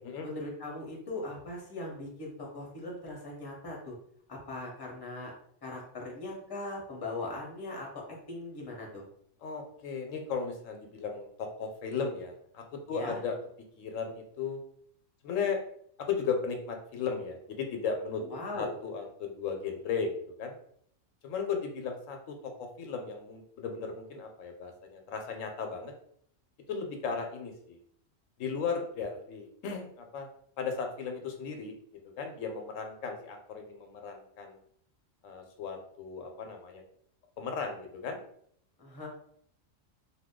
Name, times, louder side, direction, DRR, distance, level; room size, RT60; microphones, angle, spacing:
voice 1, 0.2-4.0 4.3-5.3 5.6-9.0 12.9-13.2 18.2-18.7 38.8-39.1, left 2 dB, 20° left, -2 dB, 0.7 m, -40 dB
voice 2, 9.4-13.3 13.8-14.6 15.2-15.6 16.0-18.2 18.5-20.5 21.2-25.9 26.7-27.8 28.4-30.3 30.6-31.7 32.2-34.6 35.2-36.8 37.4-38.2, left 5 dB, 85° left, 4 dB, 1.0 m, -36 dB
2.7 x 2.2 x 3.6 m, 0.65 s
omnidirectional pair, 1.3 m